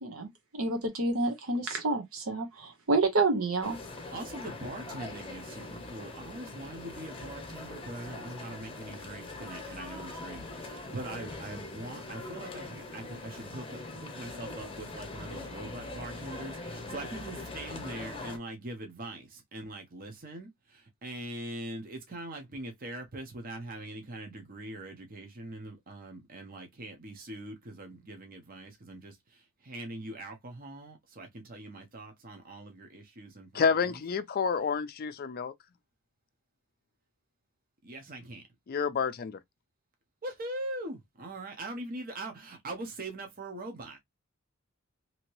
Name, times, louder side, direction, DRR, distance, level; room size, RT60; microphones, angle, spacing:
voice 1, 0.0-3.8, right 3 dB, 80° right, 0.8 m, -29 dB
sound 1, 3.6-18.4, left 2 dB, 25° left, 0.9 m, -42 dB
voice 2, 4.1-34.0 37.8-38.4 40.2-44.0, right 1 dB, 40° right, 0.8 m, -42 dB
voice 3, 33.5-35.5 38.7-39.4, left 6 dB, 45° left, 0.4 m, -29 dB
2.9 x 2.8 x 3.0 m
head